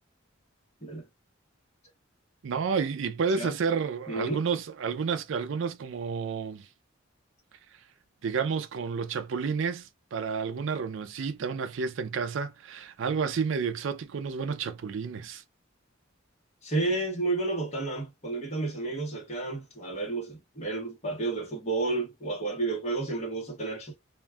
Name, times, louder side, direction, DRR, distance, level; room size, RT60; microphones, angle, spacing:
voice 1, 2.4-6.7 8.2-15.4, right 5 dB, 65° right, 0.4 m, -30 dB
voice 2, 4.1-4.4 16.6-24.0, right 3 dB, 30° left, 1.0 m, -31 dB
2.5 x 2.3 x 3.3 m
head